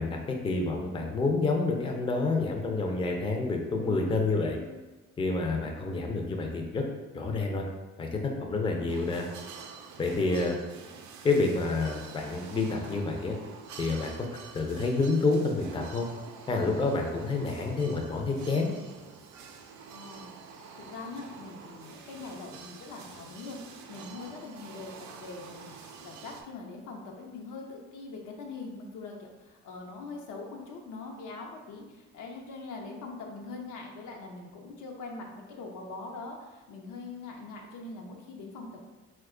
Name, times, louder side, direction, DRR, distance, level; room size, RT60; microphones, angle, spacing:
voice 1, 0.0-4.6 5.2-6.8 7.1-7.6 8.0-9.2 10.0-10.6 11.2-13.4 13.8-14.3 14.5-16.1 16.5-18.7, left 3 dB, 15° left, 2 dB, 0.4 m, -28 dB
sound 1, 8.9-26.4, right 6 dB, 70° right, 0.5 m, -47 dB
voice 2, 19.9-20.4 20.8-38.9, left 3 dB, 80° left, 1 dB, 0.6 m, -43 dB
2.9 x 2.2 x 3.6 m, 1.2 s
cardioid pair, 90°, 30 cm